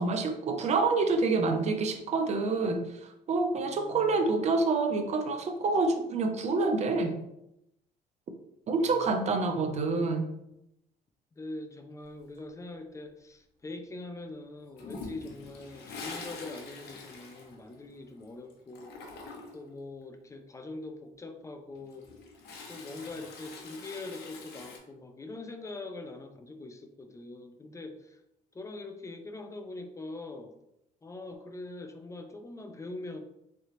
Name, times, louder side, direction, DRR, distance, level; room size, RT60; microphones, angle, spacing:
voice 1, 0.0-7.1 8.7-10.3, right 3 dB, 40° right, 5 dB, 0.6 m, -27 dB
voice 2, 3.7-4.3 8.7-9.3 11.3-18.9 19.5-22.1 22.7-28.2 28.5-30.5 31.0-33.2, left 2 dB, 20° left, 6 dB, 0.5 m, -43 dB
Toilet flush, 14.8-18.2 18.5-19.7 21.7-24.8, left 3 dB, 75° left, 0.9 m, -45 dB
3.7 x 3.3 x 3.0 m, 0.83 s
cardioid pair, 110°, 17 cm